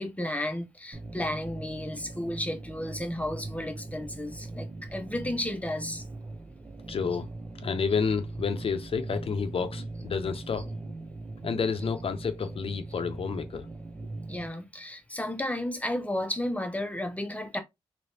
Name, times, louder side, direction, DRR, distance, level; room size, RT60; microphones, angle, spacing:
voice 1, 0.0-6.0 10.6-10.7 12.9-13.0 14.3-17.6, left 1 dB, 15° left, 0.8 m, -33 dB
sound 1, 0.9-14.5, right 2 dB, 30° right, 0.7 m, -40 dB
voice 2, 6.9-7.3 7.6-10.9 11.4-13.7, left 5 dB, 60° left, 0.7 m, -30 dB
3.2 x 3.0 x 2.8 m
cardioid pair, 45°, 11 cm